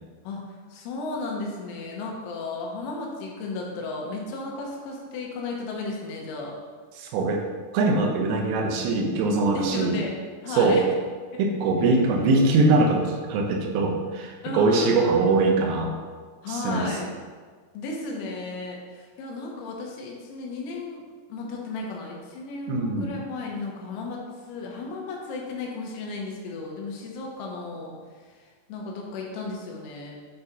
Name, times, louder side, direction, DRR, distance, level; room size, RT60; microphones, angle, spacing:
voice 1, 0.7-6.5 9.5-10.8 11.9-12.0 14.4-15.3 16.4-17.1 17.8-30.2, left 3 dB, 80° left, -1 dB, 3.5 m, -34 dB
voice 2, 7.0-7.4 7.7-10.0 10.5-10.8 11.4-16.0 16.5-17.0 22.7-23.1, right 3 dB, 85° right, 2 dB, 3.4 m, -22 dB
9.4 x 4.3 x 3.9 m, 1.5 s
omnidirectional pair, 5.6 m